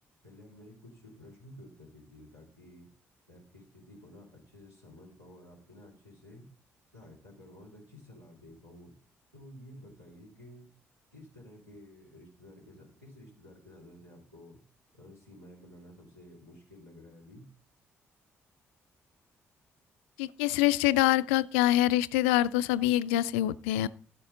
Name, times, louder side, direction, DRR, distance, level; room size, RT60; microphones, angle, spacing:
voice 1, 0.2-2.9 3.3-6.4 6.9-8.9 9.3-10.7 11.1-14.6 14.9-17.5, left 1 dB, 90° right, -4 dB, 3.1 m, -52 dB
voice 2, 20.2-23.9, left 15 dB, 70° left, 16 dB, 0.4 m, -25 dB
13.0 x 8.4 x 3.9 m, 0.42 s
figure-of-eight pair, 40°, 7 cm